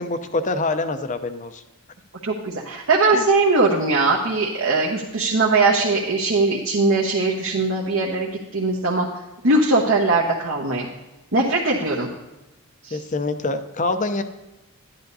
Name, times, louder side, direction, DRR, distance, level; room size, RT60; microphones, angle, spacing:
voice 1, 0.0-1.6 3.1-3.3 12.9-14.2, left 3 dB, 35° left, 9 dB, 0.6 m, -25 dB
voice 2, 2.2-9.1 9.4-10.9 11.3-12.1 12.8-13.0, right 3 dB, 65° right, -3 dB, 1.1 m, -20 dB
11.5 x 10.5 x 2.7 m, 1.0 s
head